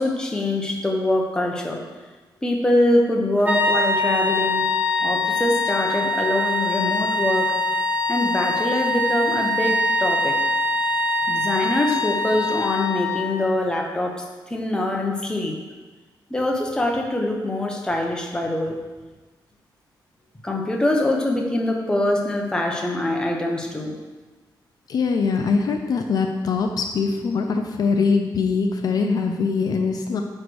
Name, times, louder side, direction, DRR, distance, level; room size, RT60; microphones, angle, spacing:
voice 1, 0.0-1.8 2.4-4.7 5.0-7.5 8.1-10.4 11.3-15.6 16.3-18.8 20.4-23.9, left 1 dB, 10° left, 0 dB, 0.9 m, -24 dB
sound 1, 3.4-13.4, left 2 dB, 20° right, 0.7 m, -23 dB
voice 2, 24.9-30.2, left 5 dB, 55° left, 4 dB, 0.5 m, -22 dB
9.2 x 3.3 x 6.2 m, 1.3 s
wide cardioid pair, 175°, 8 cm